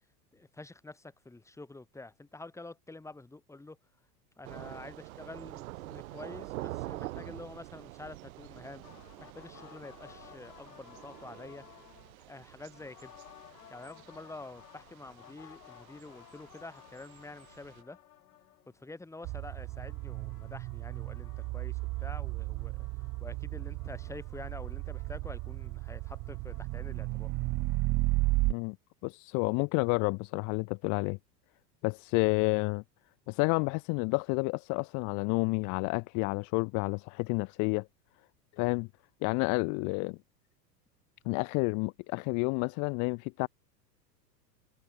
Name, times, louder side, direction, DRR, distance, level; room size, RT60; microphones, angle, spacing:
voice 1, 0.3-3.8 4.4-8.8 9.2-11.6 12.3-13.1 13.7-18.0 18.7-22.9 23.2-27.3, left 2 dB, 5° left, 2.0 m, -48 dB
Thunder / Rain, 4.4-17.8, right 18 dB, 55° right, 1.1 m, -46 dB
sound 1, 8.8-12.2 12.7-18.9 19.2-27.3, left 12 dB, 65° left, 6.3 m, -57 dB
sound 2, 19.2-28.5, right 23 dB, 40° right, 1.9 m, -34 dB
voice 2, 29.0-31.2 31.8-32.8 33.3-37.9 38.6-38.9 39.2-40.2 41.2-43.5, left 32 dB, 35° left, 0.8 m, -30 dB
figure-of-eight pair, 90°, 50 cm